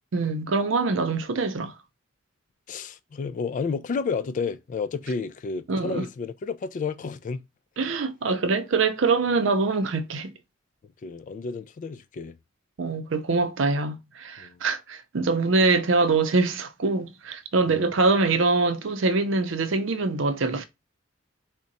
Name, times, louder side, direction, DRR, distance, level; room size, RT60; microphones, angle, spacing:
voice 1, 0.1-1.7 5.7-6.1 7.8-10.3 12.8-20.6, right 3 dB, 70° right, 0.6 m, -24 dB
voice 2, 2.7-7.4 11.0-12.4 14.4-14.6 17.7-17.9, left 5 dB, 40° left, 0.3 m, -31 dB
3.7 x 2.2 x 4.0 m
head